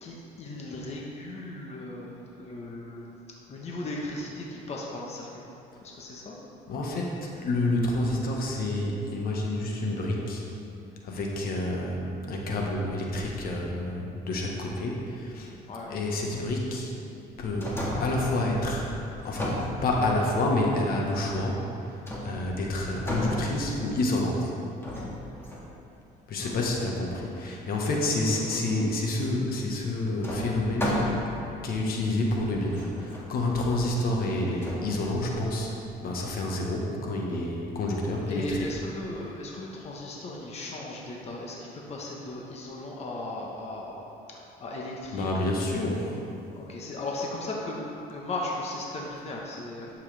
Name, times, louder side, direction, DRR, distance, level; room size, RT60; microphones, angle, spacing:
voice 1, 0.0-3.1 3.5-5.5 5.8-6.4 15.7-15.9 26.3-26.7 28.2-28.8 38.3-44.1 44.6-45.7 46.6-49.9, left 2 dB, 40° left, -2 dB, 1.2 m, -37 dB
voice 2, 6.7-10.5 11.0-15.5 15.9-16.9 17.4-17.7 18.0-18.9 19.2-24.5 26.3-31.2 31.6-35.7 36.0-38.7 39.2-39.3 45.1-46.2 46.8-46.9, left 1 dB, 60° left, -1 dB, 1.4 m, -28 dB
sound 1, 17.3-18.3 19.2-20.3 22.1-22.6 22.9-24.0 24.8-25.7 29.2-29.3 30.2-31.4 32.1-32.2 32.7-33.2 34.6-34.9, left 1 dB, 15° left, 1.9 m, -33 dB
11.0 x 7.5 x 3.4 m, 2.7 s
cardioid pair, 110°, 17 cm